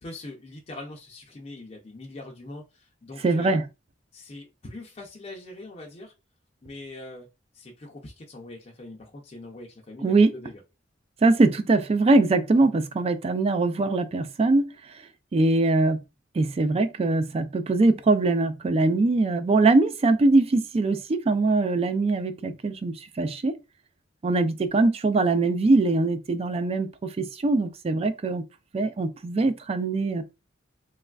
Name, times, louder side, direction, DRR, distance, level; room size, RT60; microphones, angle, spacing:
voice 1, 0.0-3.6 4.1-6.1 6.6-7.3 7.5-10.6, left 2 dB, 35° left, 0.5 m, -42 dB
voice 2, 3.2-3.6 10.0-10.3 11.2-14.7 15.3-16.0 16.3-23.5 24.2-28.4 28.7-30.2, right 3 dB, 30° right, 0.3 m, -22 dB
3.2 x 2.3 x 2.2 m
head